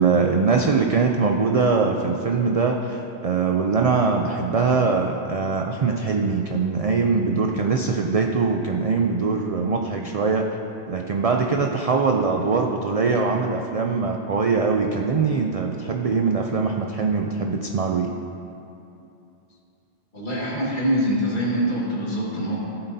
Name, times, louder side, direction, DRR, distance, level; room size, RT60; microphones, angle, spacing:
voice 1, 0.0-10.5 10.9-18.1, right 4 dB, 55° right, 2 dB, 0.4 m, -22 dB
voice 2, 20.1-22.6, equal, 45° left, -5 dB, 1.9 m, -24 dB
14.5 x 8.0 x 2.7 m, 2.8 s
omnidirectional pair, 1.1 m